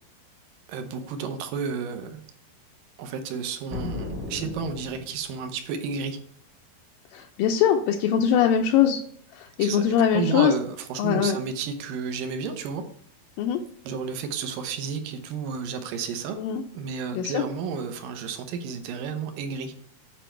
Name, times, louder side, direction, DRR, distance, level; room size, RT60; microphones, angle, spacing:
voice 1, 0.7-2.2 3.0-6.2 9.6-9.8 10.1-12.8 13.9-16.4 16.7-19.7, right 5 dB, 75° right, 7 dB, 2.2 m, -32 dB
sound 1, 3.7-5.4, left 2 dB, 45° right, 1.2 m, -35 dB
voice 2, 7.1-9.0 9.3-10.5 11.0-11.4 13.4-13.6 16.4-16.6 17.1-17.4, left 9 dB, 80° left, 2 dB, 2.1 m, -22 dB
9.2 x 5.1 x 4.4 m, 0.62 s
omnidirectional pair, 4.5 m